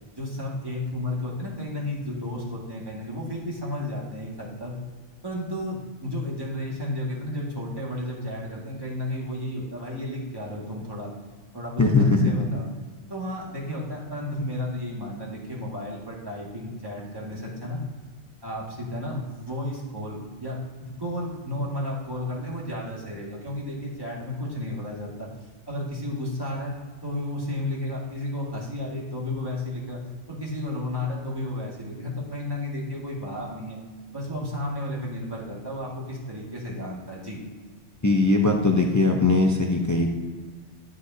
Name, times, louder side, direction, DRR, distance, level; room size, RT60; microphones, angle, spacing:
voice 1, 0.2-4.8 5.2-11.1 11.5-12.7 13.1-17.8 18.4-25.3 25.7-26.7 27.0-30.0 30.3-33.8 34.1-37.4, left 1 dB, 20° right, -4 dB, 2.0 m, -32 dB
voice 2, 11.8-12.3 38.0-40.1, left 3 dB, 20° left, 1 dB, 0.6 m, -20 dB
11.5 x 6.6 x 2.8 m, 1.5 s
omnidirectional pair, 1.2 m